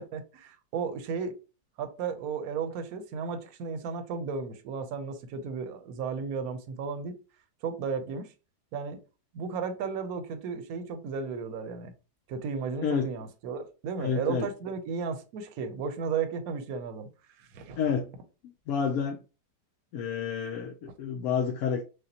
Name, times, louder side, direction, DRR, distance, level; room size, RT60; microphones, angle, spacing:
voice 1, 0.0-1.3 1.8-7.1 7.6-8.3 8.7-9.0 9.3-11.9 12.3-17.1 17.4-17.8, right 5 dB, 65° right, 1.1 m, -34 dB
voice 2, 14.0-14.5 17.8-18.1 18.7-19.2 19.9-21.8, left 6 dB, 70° left, 0.9 m, -29 dB
6.5 x 2.2 x 2.8 m
omnidirectional pair, 1.8 m